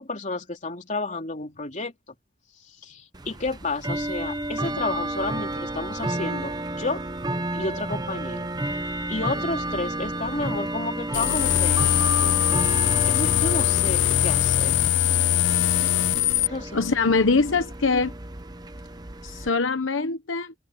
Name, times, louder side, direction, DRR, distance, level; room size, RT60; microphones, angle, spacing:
voice 1, 0.0-1.9 2.7-7.0 7.5-8.5 9.1-12.4 13.1-14.8 16.5-16.8, left 2 dB, 40° left, 3.5 m, -31 dB
Bell / Tick-tock, 3.1-19.5, right 1 dB, 20° right, 0.9 m, -31 dB
sound 1, 11.1-16.5, left 12 dB, 65° left, 0.4 m, -21 dB
voice 2, 16.7-18.1 19.2-20.5, left 4 dB, 80° left, 1.0 m, -23 dB
open air
head